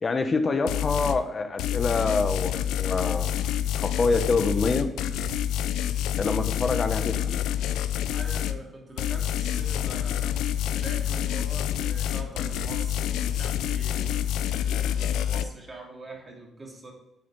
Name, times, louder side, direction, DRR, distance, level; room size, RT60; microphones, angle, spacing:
voice 1, 0.0-4.9 6.2-7.7, left 3 dB, 35° left, 8 dB, 1.0 m, -26 dB
sound 1, 0.7-1.2 1.6-8.6 9.0-15.4, left 10 dB, 90° left, 0.5 m, -27 dB
voice 2, 8.1-10.5 10.7-14.3 14.5-16.9, right 2 dB, 25° right, -1 dB, 2.6 m, -43 dB
sound 2, 9.1-15.2, right 5 dB, 45° right, 0.8 m, -48 dB
9.2 x 5.1 x 4.1 m, 0.94 s
cardioid pair, 95°, 0 cm